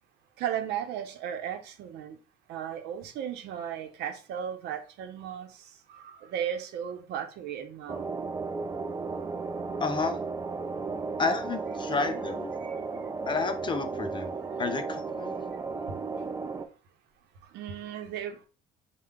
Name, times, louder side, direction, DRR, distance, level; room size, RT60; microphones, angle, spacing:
voice 1, 0.4-2.2 2.5-8.1 12.6-12.8 17.5-18.4, right 9 dB, 80° right, 0.7 m, -35 dB
sound 1, 7.9-16.7, right 4 dB, 20° right, 0.4 m, -34 dB
voice 2, 9.8-10.2 11.2-12.5 13.3-14.3 14.6-15.4, left 4 dB, 30° left, 0.6 m, -30 dB
4.3 x 2.2 x 3.7 m
cardioid pair, 110°, 17 cm